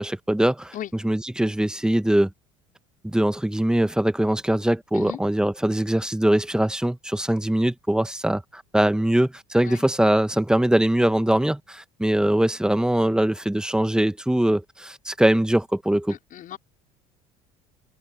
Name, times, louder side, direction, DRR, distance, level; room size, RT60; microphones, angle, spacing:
voice 1, 0.0-0.7 1.0-2.3 3.0-16.2, right 1 dB, 5° right, 1.4 m, -22 dB
voice 2, 16.1-16.6, left 12 dB, 55° left, 5.1 m, -36 dB
supercardioid pair, 85°, 17 cm